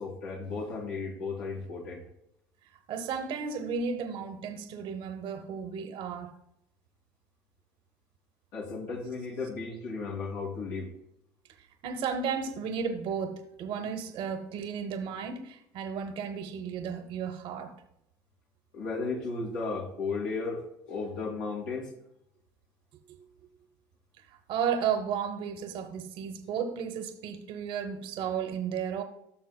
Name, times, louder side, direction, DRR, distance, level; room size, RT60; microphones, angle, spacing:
voice 1, 0.0-2.0 8.5-10.9 18.7-21.9, left 4 dB, 80° left, 2.5 m, -35 dB
voice 2, 2.9-6.3 11.8-17.7 24.5-29.0, right 7 dB, 60° right, 0.9 m, -33 dB
14.5 x 6.2 x 2.2 m
hypercardioid pair, 80°, 10 cm